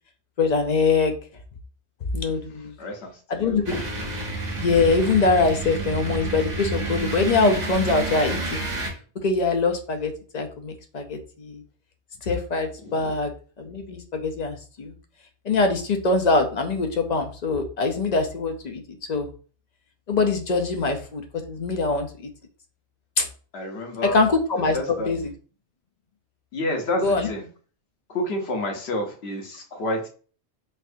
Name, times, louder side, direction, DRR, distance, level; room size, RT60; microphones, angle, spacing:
voice 1, 0.4-1.2 2.1-2.7 3.3-3.7 4.6-8.6 9.2-11.6 12.3-13.3 13.7-14.9 15.5-18.8 19.1-19.3 20.1-21.2 21.5-22.1 23.2-23.3 24.1-25.2 27.0-27.3, left 3 dB, 50° left, 5 dB, 0.6 m, -23 dB
voice 2, 2.3-3.8 12.8-13.1 23.5-24.2 24.7-25.1 26.5-27.5 28.1-30.1, left 1 dB, 65° left, 3 dB, 1.1 m, -30 dB
sound 1, 3.7-8.9, right 2 dB, 40° right, 0.9 m, -29 dB
4.3 x 2.6 x 2.6 m, 0.39 s
omnidirectional pair, 1.2 m